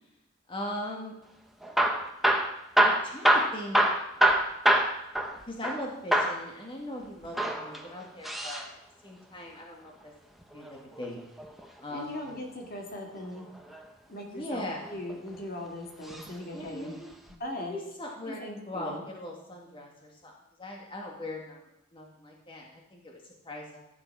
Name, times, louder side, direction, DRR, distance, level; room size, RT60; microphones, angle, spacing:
voice 1, 0.5-1.1 2.8-3.8 5.4-8.7 9.0-10.1 10.5-11.2 11.8-12.4 14.3-14.9 16.5-17.1 17.6-20.3 20.6-23.9, left 1 dB, 25° left, -1 dB, 1.9 m, -40 dB
Hammer / Drill, 1.6-5.8 6.1-6.4 7.2-8.7 10.4-11.7 13.4-13.8 14.5-15.4 16.0-16.3 16.6-16.7 17.3-17.4, right 1 dB, ahead, 1.1 m, -25 dB
voice 2, 11.9-13.5 14.1-17.0 17.4-17.8 18.3-19.1, left 1 dB, 45° left, 2 dB, 2.1 m, -39 dB
14.5 x 8.8 x 4.7 m, 0.83 s
head